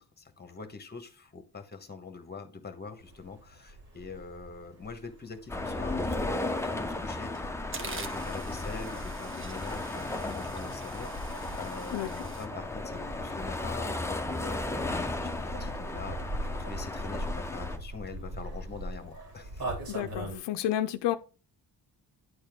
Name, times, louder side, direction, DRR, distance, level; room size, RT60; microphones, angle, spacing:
voice 1, 0.0-14.7 15.2-16.3 16.6-19.6, left 4 dB, 25° left, 1.2 m, -44 dB
sound 1, 3.0-20.4, right 1 dB, 55° right, 2.9 m, -42 dB
sound 2, 5.5-17.8, left 2 dB, 5° left, 0.7 m, -35 dB
sound 3, 6.8-7.0 7.3-12.5, right 4 dB, 30° right, 0.9 m, -45 dB
voice 2, 11.9-12.2 19.9-21.2, left 12 dB, 85° left, 0.6 m, -31 dB
9.7 x 4.4 x 3.5 m
cardioid pair, 105°, 41 cm